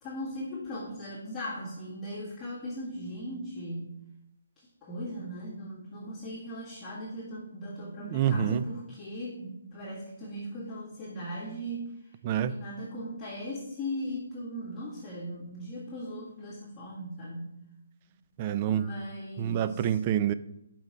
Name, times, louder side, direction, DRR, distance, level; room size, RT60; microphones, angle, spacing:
voice 1, 0.0-3.9 4.6-12.1 12.5-17.5 18.1-18.2 18.7-20.0, equal, 10° left, 1.9 m, -38 dB
voice 2, 8.0-8.6 12.2-12.5 18.4-18.9 19.4-20.3, right 10 dB, 30° right, 0.3 m, -27 dB
5.7 x 4.4 x 4.8 m
hypercardioid pair, 160°, 0 cm